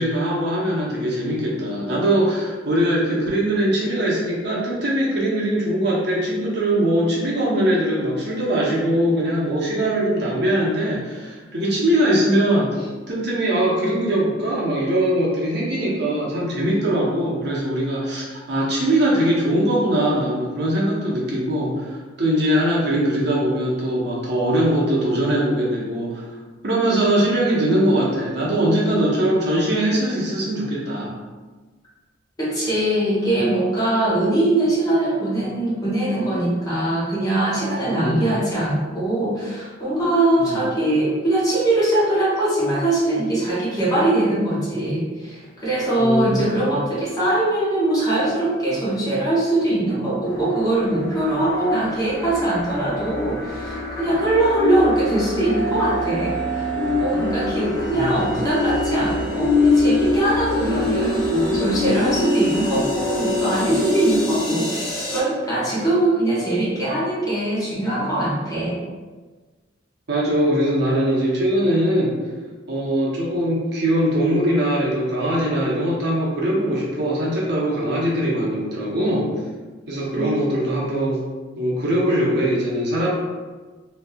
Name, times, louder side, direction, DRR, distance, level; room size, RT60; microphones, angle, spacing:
voice 1, 0.0-26.2 26.6-31.1 38.0-38.3 40.4-40.6 46.0-46.6 57.9-58.2 70.1-72.2 72.7-79.3 79.9-81.2 81.6-83.1, right 1 dB, 60° right, -5 dB, 0.8 m, -21 dB
voice 2, 32.4-56.4 57.0-68.8 80.1-80.3, right 1 dB, 20° left, -9 dB, 1.0 m, -21 dB
sound 1, 50.3-65.2, left 2 dB, 55° left, 1.0 m, -24 dB
3.2 x 2.7 x 2.3 m, 1.3 s
head